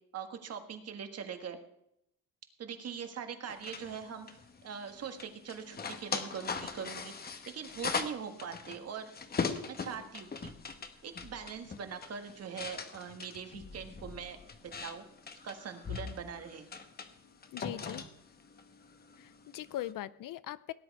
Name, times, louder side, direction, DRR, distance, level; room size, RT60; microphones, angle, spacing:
voice 1, 0.1-1.6 2.6-4.3 4.6-9.1 9.7-10.5 11.0-15.0 15.4-16.7, right 7 dB, 45° right, 7 dB, 1.6 m, -42 dB
sound 1, 3.5-19.9, left 5 dB, 30° left, 1.0 m, -41 dB
voice 2, 17.5-18.0 19.2-20.7, left 13 dB, 70° left, 18 dB, 0.6 m, -40 dB
18.0 x 10.5 x 4.7 m, 0.78 s
cardioid pair, 175°, 34 cm